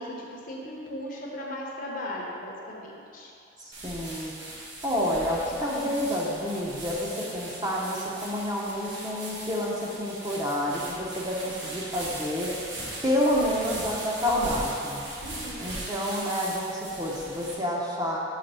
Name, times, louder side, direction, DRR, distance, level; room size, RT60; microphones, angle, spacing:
voice 1, 0.0-3.3 15.2-15.7, left 1 dB, 40° left, -2 dB, 0.7 m, -37 dB
voice 2, 3.6-4.3 4.8-12.5 13.0-15.0 15.6-18.2, equal, 20° right, -4 dB, 0.7 m, -29 dB
sound 1, 3.7-17.5, right 1 dB, 60° right, 1.1 m, -39 dB
5.7 x 3.5 x 5.4 m, 2.5 s
head